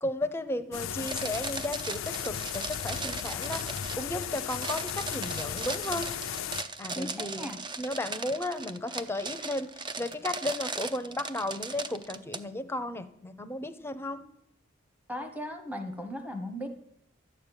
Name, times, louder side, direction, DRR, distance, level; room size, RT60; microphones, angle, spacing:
voice 1, 0.0-3.6 4.0-6.1 6.8-7.5 7.8-14.2, left 1 dB, 10° left, 8 dB, 0.8 m, -34 dB
sound 1, 0.7-6.6, left 9 dB, 80° left, 0.5 m, -36 dB
sound 2, 1.0-12.4, right 3 dB, 25° right, 0.6 m, -38 dB
voice 2, 6.9-7.6 15.1-16.7, equal, 10° right, 7 dB, 1.1 m, -37 dB
12.0 x 6.6 x 9.1 m, 0.72 s
head